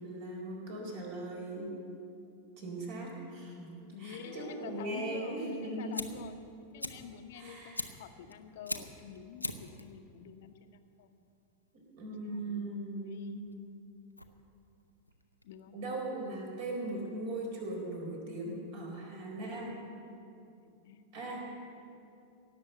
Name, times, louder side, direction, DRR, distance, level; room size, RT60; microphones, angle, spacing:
voice 1, 0.0-1.7 2.6-6.2 7.3-7.8 11.7-13.4 15.7-19.8 21.1-21.6, right 1 dB, 50° right, -1 dB, 4.1 m, -39 dB
voice 2, 3.9-6.4 6.7-11.2 12.2-13.3 15.4-15.8 20.6-21.1, left 7 dB, 55° left, 8 dB, 0.9 m, -48 dB
Fire, 5.5-16.0, left 1 dB, 85° left, 0.7 m, -44 dB
17.5 x 7.2 x 8.1 m, 2.6 s
figure-of-eight pair, 90°, 0 cm